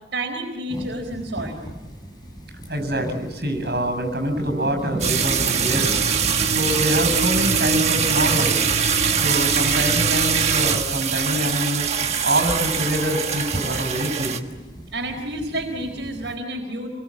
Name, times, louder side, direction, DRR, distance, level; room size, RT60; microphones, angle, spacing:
voice 1, 0.1-1.6 14.9-16.9, right 1 dB, 85° right, -1 dB, 4.1 m, -30 dB
sound 1, 0.7-16.4, right 1 dB, 25° left, 6.1 m, -37 dB
voice 2, 2.7-5.9 6.5-8.6 9.1-11.9 12.2-14.4, equal, 60° right, 6 dB, 6.8 m, -25 dB
sound 2, 5.0-14.4, right 6 dB, 35° right, 1.4 m, -22 dB
27.5 x 22.5 x 8.6 m, 1.1 s
head